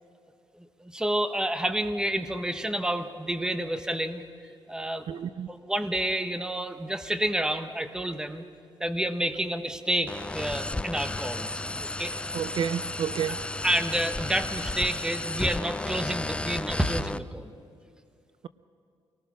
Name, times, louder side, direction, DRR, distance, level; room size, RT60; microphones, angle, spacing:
voice 1, 0.6-4.2 4.7-5.1 5.5-8.4 8.8-11.6 12.0-12.1 13.6-17.5, right 1 dB, 5° right, 1.1 m, -29 dB
voice 2, 5.1-5.5 12.3-13.4, right 9 dB, 60° right, 0.5 m, -30 dB
sound 1, 10.1-17.2, left 2 dB, 10° left, 0.4 m, -33 dB
25.0 x 19.0 x 6.2 m
cardioid pair, 125°, 10 cm